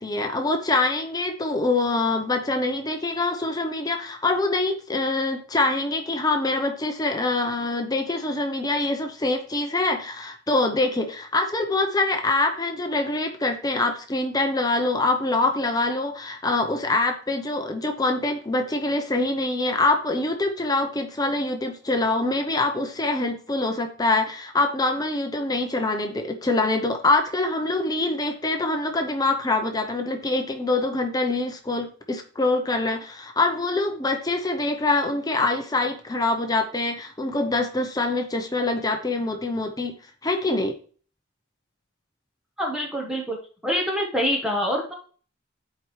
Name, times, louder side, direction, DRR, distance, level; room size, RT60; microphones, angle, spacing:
voice 1, 0.0-39.9 40.2-40.8, left 2 dB, 20° left, 5 dB, 0.7 m, -24 dB
voice 2, 42.6-43.4 43.6-45.0, equal, 5° right, -1 dB, 1.0 m, -25 dB
10.5 x 4.7 x 3.2 m, 0.42 s
head